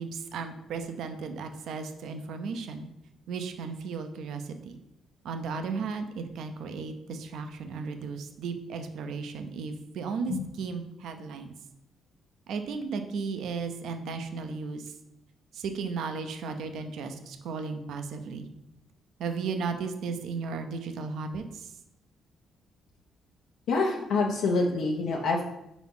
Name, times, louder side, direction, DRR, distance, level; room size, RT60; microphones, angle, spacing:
voice 1, 0.0-2.9 3.3-4.7 5.2-11.5 12.5-14.9 15.5-18.5 19.2-21.7, right 5 dB, 75° right, 7 dB, 0.6 m, -35 dB
voice 2, 23.7-25.4, left 3 dB, 85° left, -1 dB, 0.7 m, -26 dB
4.7 x 4.1 x 5.5 m, 0.84 s
cardioid pair, 90°, 0 cm